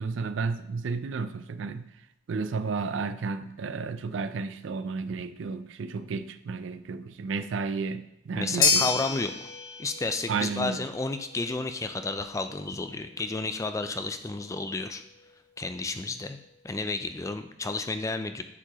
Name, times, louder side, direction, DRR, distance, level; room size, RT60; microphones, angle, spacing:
voice 1, 0.0-1.8 2.3-9.0 10.3-10.8, right 4 dB, 80° right, 12 dB, 0.4 m, -32 dB
voice 2, 8.4-9.5 9.8-15.0 15.6-16.4 16.6-18.4, left 3 dB, 15° left, 9 dB, 0.3 m, -32 dB
sound 1, 8.6-17.0, left 4 dB, 80° left, 1.1 m, -33 dB
8.1 x 4.7 x 2.9 m, 0.82 s
head